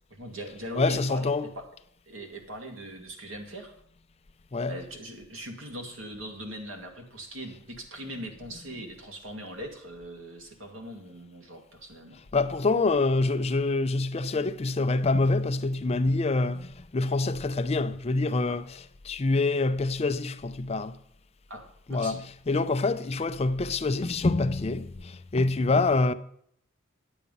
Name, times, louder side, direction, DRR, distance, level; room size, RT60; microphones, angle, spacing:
voice 1, 0.1-1.6 2.1-3.7 4.7-12.2 18.5-18.6 21.5-21.6 21.9-22.2, right 1 dB, 85° right, 2.2 m, -41 dB
voice 2, 0.8-1.5 4.5-4.8 12.3-20.9 21.9-26.1, left 3 dB, 30° left, 0.5 m, -26 dB
10.0 x 8.3 x 5.4 m
head